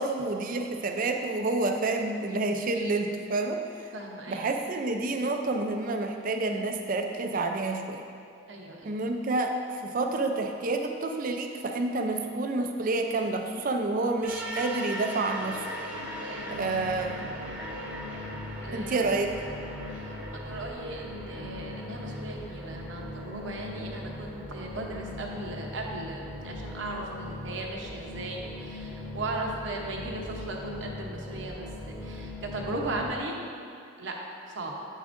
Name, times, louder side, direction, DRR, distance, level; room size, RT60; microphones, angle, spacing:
voice 1, 0.0-3.6 4.3-8.0 8.8-9.5 9.8-15.6 16.5-17.3 18.7-19.3, right 2 dB, 45° right, 4 dB, 0.5 m, -29 dB
voice 2, 3.9-4.4 8.5-9.0 16.2-16.5 18.6-19.1 19.9-31.7 32.0-33.3 34.0-34.1 34.5-34.7, right 2 dB, 65° right, 0 dB, 0.8 m, -37 dB
sound 1, 14.2-33.2, left 1 dB, 5° right, 0.8 m, -39 dB
8.3 x 7.0 x 2.6 m, 2.5 s
head